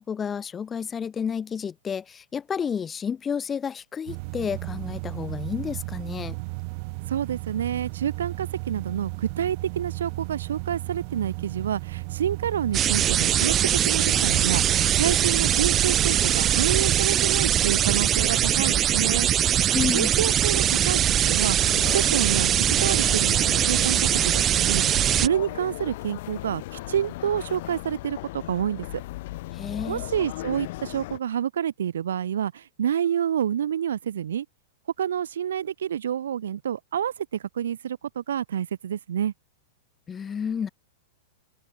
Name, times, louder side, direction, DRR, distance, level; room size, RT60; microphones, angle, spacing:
voice 1, 0.0-6.4 19.7-20.1 29.5-30.0 40.1-40.7, left 7 dB, 20° left, 4.8 m, -31 dB
sound 1, 4.1-17.1, right 31 dB, 50° right, 1.5 m, -35 dB
voice 2, 7.1-19.3 19.9-22.5 22.8-29.0 29.9-34.5 35.0-39.3, right 9 dB, 80° right, 1.1 m, -28 dB
sound 2, 12.7-25.3, right 10 dB, 30° right, 0.5 m, -22 dB
sound 3, 21.6-31.2, left 18 dB, 60° left, 4.0 m, -37 dB
open air
hypercardioid pair, 115°, 0 cm